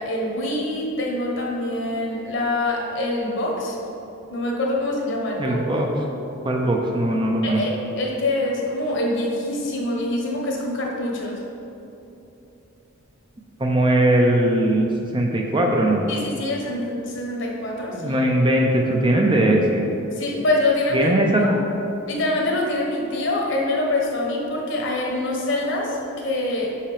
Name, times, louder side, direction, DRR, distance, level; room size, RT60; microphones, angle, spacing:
voice 1, 0.0-3.8 4.3-5.6 7.4-11.4 16.1-18.2 20.1-21.1 21.4-21.5 22.1-26.7, left 2 dB, 55° left, -1 dB, 1.2 m, -25 dB
voice 2, 5.4-5.9 6.4-7.6 13.6-14.9 15.1-16.1 18.0-19.8 20.9-21.4, right 1 dB, 20° right, 0 dB, 0.6 m, -19 dB
6.1 x 5.6 x 5.0 m, 2.9 s
head